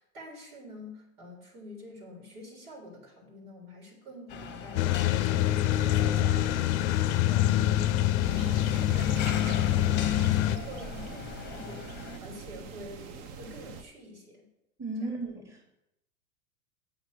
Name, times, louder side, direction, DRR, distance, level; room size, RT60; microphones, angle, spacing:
voice 1, 0.0-14.5 15.1-15.2, left 1 dB, 85° right, 0 dB, 3.5 m, -47 dB
sound 1, 4.3-12.2, left 7 dB, 25° left, 0.8 m, -41 dB
sound 2, 4.8-10.6, left 13 dB, 50° left, 0.5 m, -25 dB
sound 3, 8.2-13.8, right 6 dB, 35° right, 0.8 m, -44 dB
voice 2, 14.8-15.7, right 2 dB, 5° right, 0 dB, 1.3 m, -35 dB
7.1 x 5.8 x 6.6 m, 0.87 s
hypercardioid pair, 110°, 45 cm